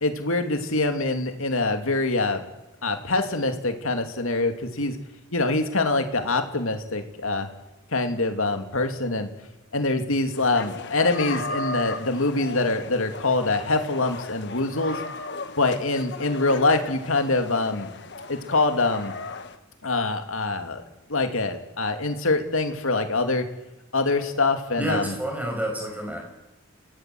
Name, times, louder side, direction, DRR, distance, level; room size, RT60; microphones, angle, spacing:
voice 1, 0.0-2.4 2.8-5.0 5.3-7.5 7.9-9.3 9.7-15.0 15.6-17.9 18.3-19.1 19.8-20.8 21.1-23.5 23.9-25.2, left 2 dB, 70° left, 6 dB, 2.5 m, -24 dB
sound 1, 10.4-19.6, left 3 dB, 55° left, 1.4 m, -36 dB
voice 2, 24.8-26.2, right 1 dB, 5° right, 1 dB, 5.8 m, -29 dB
29.5 x 17.5 x 7.8 m, 0.97 s
head